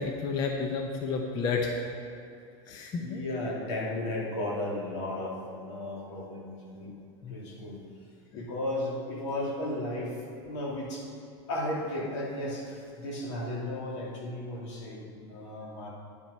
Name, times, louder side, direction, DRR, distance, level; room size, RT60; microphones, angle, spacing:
voice 1, 0.0-1.7 2.7-3.2 7.2-7.4 8.3-8.4, left 5 dB, 25° left, 2 dB, 0.7 m, -31 dB
voice 2, 3.0-6.9 7.3-7.8 8.3-10.1 10.4-11.1 11.5-15.9, left 1 dB, 85° left, -3 dB, 2.8 m, -34 dB
10.0 x 7.6 x 5.4 m, 2.6 s
supercardioid pair, 175°, 15 cm